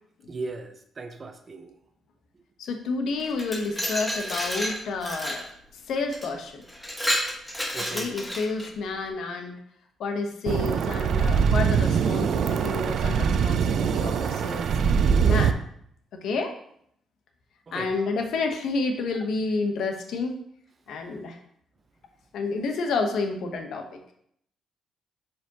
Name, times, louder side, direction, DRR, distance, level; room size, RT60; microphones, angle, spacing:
voice 1, 0.3-1.8 7.7-8.2 17.7-18.0, right 3 dB, 35° right, 7 dB, 0.7 m, -37 dB
voice 2, 2.6-5.5 5.9-6.6 7.8-9.6 10.0-14.7 15.2-15.6 16.1-16.5 17.7-20.4 20.9-21.4 22.3-24.0, left 3 dB, 75° left, 4 dB, 1.0 m, -29 dB
Glass, 3.2-5.5 6.1-6.3 6.7-8.7, equal, 5° left, 1.1 m, -30 dB
sound 1, 10.5-15.5, right 7 dB, 65° right, 0.4 m, -23 dB
7.1 x 5.0 x 2.9 m, 0.69 s
cardioid pair, 90°, 0 cm